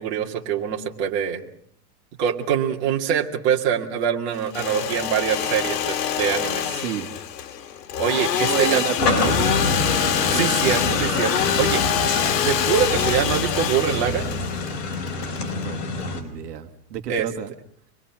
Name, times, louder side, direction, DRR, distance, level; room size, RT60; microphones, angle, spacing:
voice 1, 0.0-1.4 2.2-6.6 8.0-8.8 10.2-12.1 12.4-14.3 17.1-17.3, right 8 dB, 45° right, 0 dB, 2.4 m, -24 dB
Engine / Sawing, 4.3-16.0, left 9 dB, 85° left, 1.9 m, -26 dB
voice 2, 6.6-7.1 8.4-10.0 10.3-10.5 15.4-17.5, right 9 dB, 80° right, 6 dB, 1.8 m, -30 dB
sound 1, 9.0-16.2, left 3 dB, 40° left, 4.4 m, -26 dB
25.0 x 21.5 x 6.0 m, 0.65 s
supercardioid pair, 170°, 48 cm